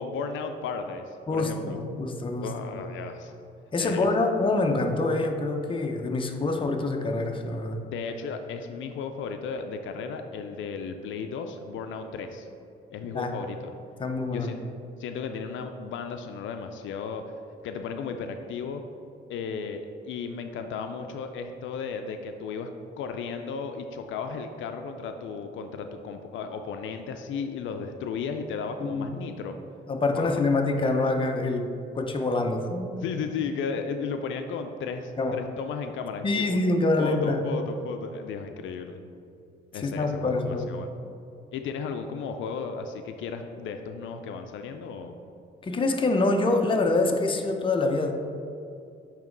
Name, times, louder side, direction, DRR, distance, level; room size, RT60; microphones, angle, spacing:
voice 1, 0.0-1.8 2.4-3.3 3.8-4.1 7.8-12.5 12.9-13.7 14.3-14.6 15.0-17.2 17.6-18.8 19.3-22.7 23.0-29.6 30.1-30.4 33.0-36.6 37.0-39.0 39.7-40.9 41.5-45.2, left 5 dB, 75° left, 6 dB, 0.4 m, -34 dB
voice 2, 1.3-2.8 3.7-7.8 13.1-13.3 14.0-14.5 28.8-29.1 29.9-31.7 31.9-33.2 35.2-35.4 36.2-37.4 39.7-40.7 45.6-48.1, left 2 dB, 25° left, 4 dB, 0.6 m, -26 dB
8.4 x 3.0 x 3.8 m, 2.6 s
cardioid pair, 90°, 20 cm